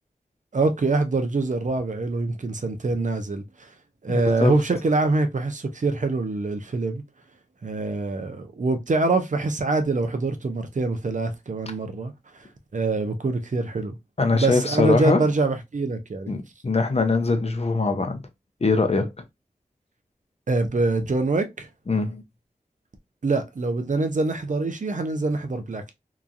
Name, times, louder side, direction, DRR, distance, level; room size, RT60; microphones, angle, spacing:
voice 1, 0.5-3.7 4.0-7.0 7.6-12.1 12.7-14.0 14.3-16.3 20.5-21.7 23.2-25.9, right 3 dB, 60° right, 0.6 m, -24 dB
voice 2, 4.1-4.5 14.2-15.2 16.3-18.2 18.6-19.1 21.9-22.2, left 3 dB, 45° left, 0.6 m, -22 dB
2.9 x 2.3 x 2.5 m
cardioid pair, 40°, 15 cm